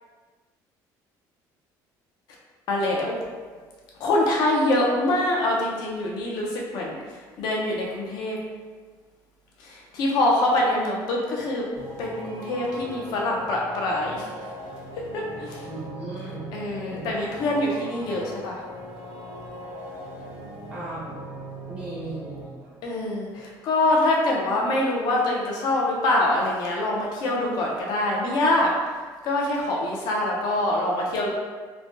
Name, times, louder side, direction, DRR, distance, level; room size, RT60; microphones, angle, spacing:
voice 1, 2.7-3.2 4.0-8.4 9.6-11.6 12.0-14.3 15.1-15.6 16.5-18.6 22.8-28.7 29.2-31.3, left 1 dB, 60° left, -2 dB, 0.6 m, -24 dB
sound 1, 11.8-22.4, right 1 dB, 90° right, 0.9 m, -40 dB
voice 2, 15.6-16.5 16.9-17.3 20.7-21.2 21.7-22.8, right 2 dB, 10° right, -9 dB, 0.5 m, -37 dB
3.2 x 2.1 x 2.7 m, 1.5 s
cardioid pair, 180°, 8 cm